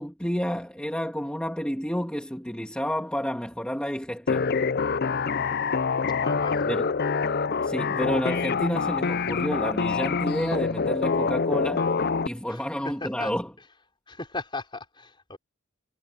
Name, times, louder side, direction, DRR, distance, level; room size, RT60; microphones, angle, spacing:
voice 1, 0.0-4.5 6.7-6.8 7.6-11.9 12.2-13.5, equal, 5° left, 2.2 m, -30 dB
sound 1, 4.3-12.3, left 5 dB, 45° left, 0.5 m, -26 dB
voice 2, 6.2-6.8 12.5-13.3 14.1-15.4, left 3 dB, 20° left, 4.9 m, -37 dB
head